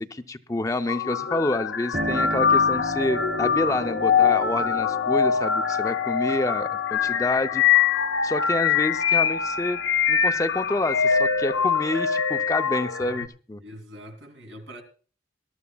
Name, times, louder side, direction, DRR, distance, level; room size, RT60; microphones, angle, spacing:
voice 1, 0.0-7.6 8.2-9.8 10.1-13.6, left 2 dB, 20° left, 0.5 m, -28 dB
sound 1, 0.9-13.3, left 7 dB, 70° left, 0.6 m, -23 dB
Piano, 1.9-10.4 10.8-11.8, equal, 45° right, 4.7 m, -37 dB
voice 2, 6.9-7.3 13.6-14.8, equal, 80° right, 2.8 m, -44 dB
21.0 x 12.5 x 2.3 m
head